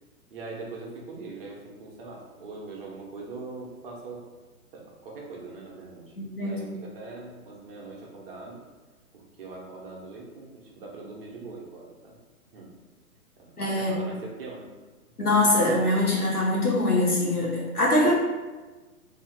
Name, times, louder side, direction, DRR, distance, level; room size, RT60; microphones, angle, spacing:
voice 1, 0.3-4.2 4.7-6.0 6.3-8.6 9.1-12.2 12.5-12.7 13.4-13.5 13.8-14.7, right 3 dB, 40° right, -2 dB, 0.9 m, -41 dB
voice 2, 6.2-6.7 13.6-13.9 15.2-18.1, left 1 dB, 85° left, -4 dB, 1.4 m, -23 dB
2.8 x 2.8 x 4.2 m, 1.3 s
figure-of-eight pair, 120°, 44 cm